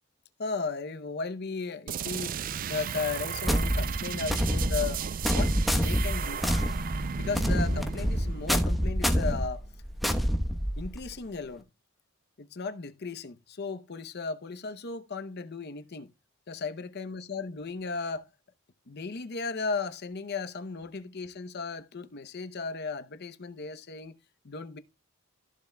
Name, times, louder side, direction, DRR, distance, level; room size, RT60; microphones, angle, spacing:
voice 1, 0.4-2.4 2.7-5.0 5.3-6.4 7.1-9.6 10.8-11.6 12.4-16.1 16.5-18.3 18.9-24.2 24.4-24.8, left 4 dB, 50° left, 0.7 m, -35 dB
sound 1, 1.9-9.4, right 7 dB, 40° right, 0.4 m, -35 dB
sound 2, 3.5-11.1, equal, ahead, 1.0 m, -27 dB
15.0 x 7.0 x 2.2 m
head